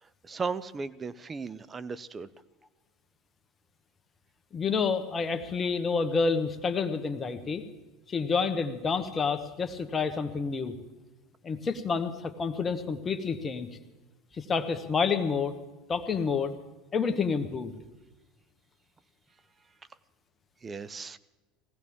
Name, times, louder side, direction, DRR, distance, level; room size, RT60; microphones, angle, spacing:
voice 1, 0.0-2.3 20.6-21.2, right 4 dB, 25° right, 16 dB, 0.7 m, -36 dB
voice 2, 4.5-7.6 8.1-10.8 11.4-13.7 14.4-15.6 15.9-16.5 16.9-17.7, left 5 dB, 30° left, 8 dB, 1.4 m, -29 dB
19.5 x 16.5 x 3.7 m, 1.1 s
hypercardioid pair, 80°, 0 cm